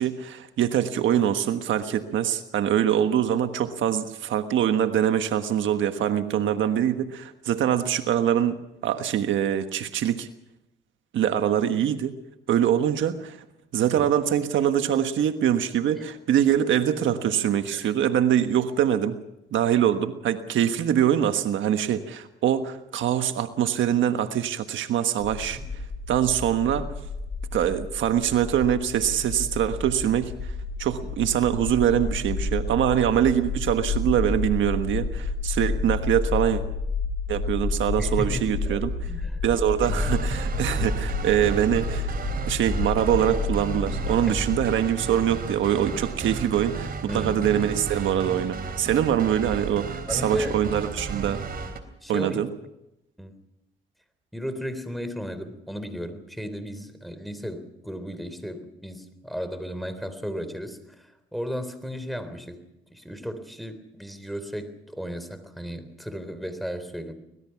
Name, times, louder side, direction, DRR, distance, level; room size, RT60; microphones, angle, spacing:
voice 1, 0.0-8.5 8.8-10.3 11.1-12.1 12.5-13.4 13.7-19.2 19.5-25.6 26.1-26.9 27.5-30.3 30.8-36.6 37.3-38.9 39.4-42.1 42.4-51.4 52.1-52.5, right 10 dB, 75° right, 8 dB, 1.4 m, -24 dB
sound 1, 25.2-44.7, left 3 dB, 90° left, 7.2 m, -30 dB
voice 2, 38.0-38.8 39.1-39.6 39.9-40.2 44.2-44.4 47.1-47.5 48.1-48.4 50.1-50.6 52.0-52.4 53.2-53.4 54.3-62.6 62.9-67.1, equal, ahead, 9 dB, 3.6 m, -35 dB
sound 2, 39.8-51.8, right 5 dB, 50° right, 3.4 m, -33 dB
25.0 x 19.5 x 5.9 m, 0.87 s
cardioid pair, 90°, 20 cm